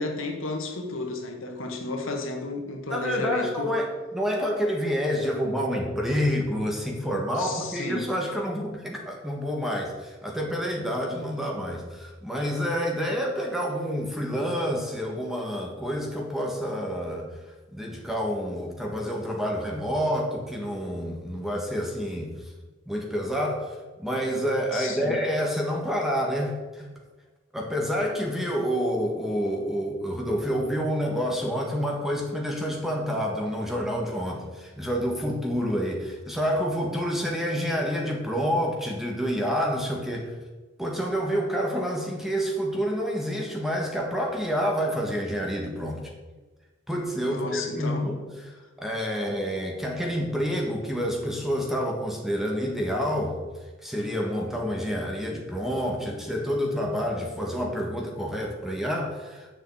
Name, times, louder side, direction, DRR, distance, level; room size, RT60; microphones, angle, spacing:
voice 1, 0.0-3.7 7.3-8.1 24.7-25.2 47.2-48.1, left 2 dB, 70° left, 3 dB, 1.7 m, -32 dB
voice 2, 2.9-17.3 17.7-22.5 22.9-26.9 27.5-40.3 40.8-46.0 46.9-48.5 48.8-53.4 53.8-59.5, equal, ahead, 0 dB, 1.5 m, -28 dB
7.2 x 7.1 x 7.9 m, 1.3 s
head